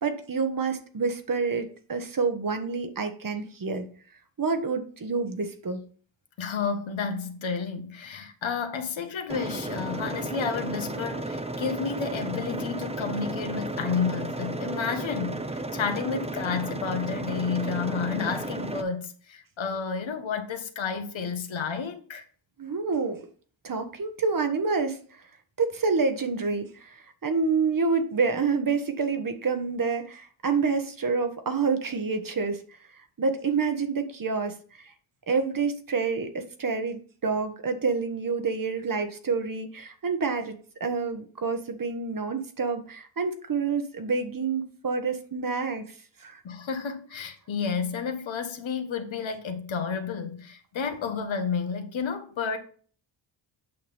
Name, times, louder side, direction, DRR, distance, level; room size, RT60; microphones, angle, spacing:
voice 1, 0.0-3.9 4.4-5.8 22.6-23.3 23.6-25.2 25.6-32.6 33.2-34.9 35.3-46.4, right 4 dB, 45° right, 1.4 m, -28 dB
voice 2, 6.4-22.2 22.9-23.0 46.4-52.6, left 6 dB, 70° left, 1.5 m, -31 dB
sound 1, 9.3-18.8, right 2 dB, 15° right, 0.8 m, -33 dB
8.5 x 5.9 x 3.5 m
cardioid pair, 80°, 48 cm